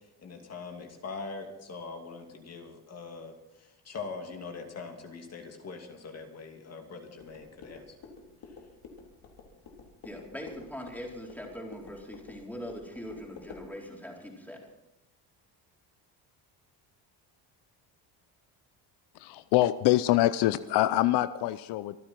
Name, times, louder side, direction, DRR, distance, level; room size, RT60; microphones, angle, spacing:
voice 1, 0.2-7.9, left 4 dB, 40° left, 3 dB, 2.7 m, -42 dB
sound 1, 7.2-13.7, left 4 dB, 60° left, 3.6 m, -50 dB
voice 2, 10.0-14.6, equal, 5° left, -1 dB, 4.1 m, -41 dB
voice 3, 19.2-22.0, left 15 dB, 75° left, 14 dB, 0.7 m, -25 dB
26.0 x 9.8 x 4.5 m, 0.94 s
cardioid pair, 120°, 40 cm